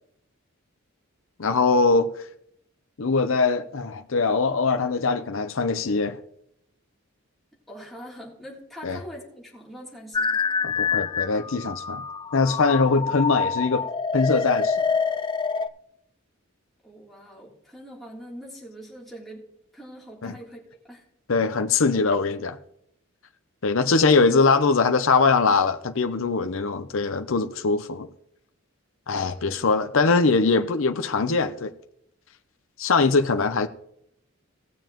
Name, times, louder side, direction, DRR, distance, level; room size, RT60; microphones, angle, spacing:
voice 1, 1.4-2.1 3.0-6.2 8.8-9.0 10.6-12.0 12.3-14.8 20.2-20.3 21.3-22.6 23.6-28.1 29.1-31.7 32.8-33.7, left 4 dB, 65° left, 0.7 m, -22 dB
voice 2, 7.7-10.4 16.8-19.5 19.7-21.0 29.6-29.7 33.0-33.3, equal, ahead, 3.1 m, -43 dB
sound 1, 10.1-15.7, left 5 dB, 20° left, 0.3 m, -26 dB
18.5 x 7.0 x 3.0 m
head